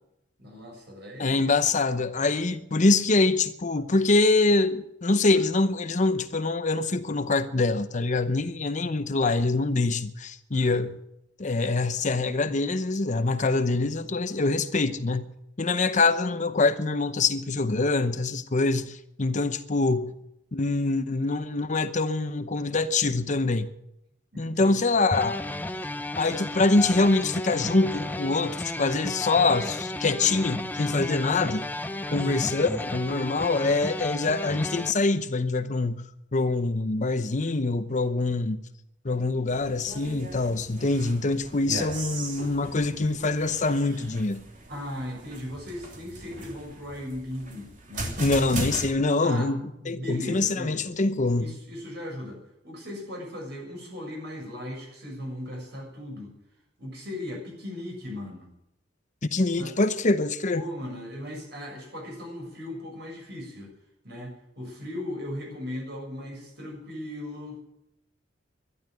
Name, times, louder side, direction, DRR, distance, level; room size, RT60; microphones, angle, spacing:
voice 1, 0.4-1.5 10.5-10.9 24.3-25.0 32.2-32.6 44.7-48.6 49.2-49.5 49.8-50.8 51.2-56.3 56.8-58.5 59.5-59.7 60.5-63.7 64.0-67.6, left 1 dB, 65° right, 7.0 m, -38 dB
voice 2, 1.2-11.0 11.4-15.3 15.6-20.1 20.5-23.7 24.4-25.4 26.2-31.7 32.1-38.6 39.0-44.4 48.2-51.5 59.3-60.6, left 3 dB, 40° left, 0.8 m, -24 dB
sound 1, 25.1-34.9, left 1 dB, 10° left, 0.7 m, -33 dB
sound 2, 39.5-48.8, right 2 dB, 45° right, 3.1 m, -39 dB
12.0 x 12.0 x 9.1 m
head